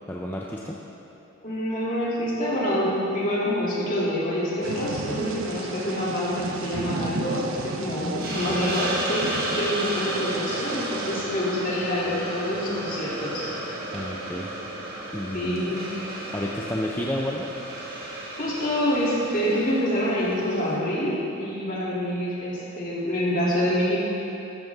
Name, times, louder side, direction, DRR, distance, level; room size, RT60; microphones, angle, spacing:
voice 1, 0.1-0.8 13.9-14.5 15.1-15.8 16.3-17.5, left 1 dB, 10° left, -3 dB, 0.7 m, -30 dB
voice 2, 1.4-13.5 15.3-15.9 18.4-24.0, equal, 40° left, -6 dB, 3.0 m, -26 dB
Thunder / Rain, 4.6-11.2, right 3 dB, 70° right, 0.9 m, -34 dB
Hiss, 8.2-20.7, right 1 dB, 45° right, 2.0 m, -33 dB
13.5 x 12.5 x 3.7 m, 2.9 s
head